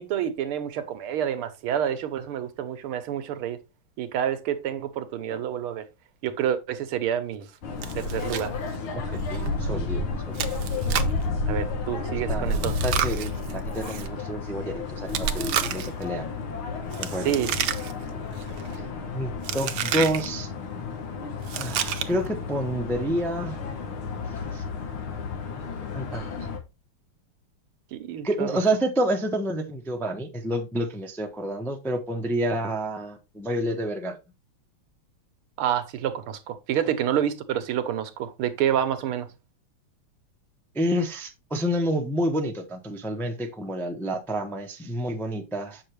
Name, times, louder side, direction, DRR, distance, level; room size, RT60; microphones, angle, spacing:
voice 1, 0.0-3.6 4.0-5.8 6.2-7.5 7.9-8.5 11.5-12.8 17.2-17.5 27.9-28.5 35.6-39.3, right 9 dB, 90° right, 1.8 m, -28 dB
sound 1, 7.6-26.6, left 3 dB, 75° left, 2.3 m, -31 dB
Chewing mastication, 7.8-8.5 8.7-8.8 9.3-9.5 10.3-11.2 12.5-14.1 15.1-16.0 16.9-18.1 18.4-18.8 19.4-20.3 21.4-22.3, right 10 dB, 65° right, 1.1 m, -30 dB
voice 2, 8.9-10.4 11.9-16.3 17.0-17.3 18.1-18.2 19.1-20.5 21.5-23.6 24.5-24.6 25.9-26.3 28.2-34.2 40.7-45.8, right 1 dB, ahead, 0.4 m, -29 dB
7.8 x 6.5 x 3.3 m
omnidirectional pair, 2.3 m